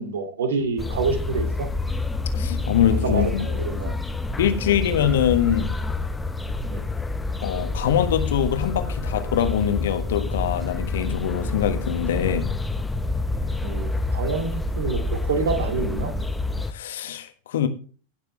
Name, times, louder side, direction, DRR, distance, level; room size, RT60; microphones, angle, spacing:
voice 1, 0.0-1.7 3.0-3.9 6.7-6.9 13.6-16.1, right 4 dB, 60° right, 2.1 m, -27 dB
sound 1, 0.8-16.7, left 3 dB, 10° left, 0.7 m, -27 dB
voice 2, 2.3-3.4 4.4-5.7 7.4-12.5 16.7-17.7, left 9 dB, 60° left, 1.5 m, -23 dB
16.5 x 6.8 x 3.2 m
figure-of-eight pair, 90°, 0 cm